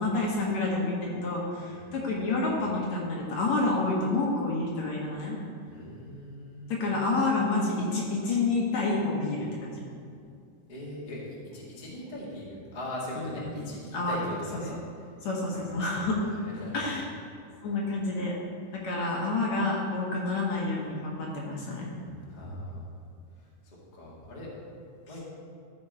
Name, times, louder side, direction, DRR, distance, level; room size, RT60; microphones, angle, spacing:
voice 1, 0.0-5.4 6.7-9.8 13.2-14.2 15.2-16.2 16.7-17.0 17.6-18.3 18.7-22.5, left 3 dB, 65° left, -2 dB, 2.1 m, -29 dB
voice 2, 5.7-7.0 10.7-13.8 14.1-14.7 15.1-15.2 15.5-17.0 22.3-23.0 23.3-24.5 25.1-25.3, left 1 dB, 20° left, -6 dB, 1.3 m, -41 dB
13.5 x 5.1 x 4.4 m, 2.3 s
omnidirectional pair, 3.7 m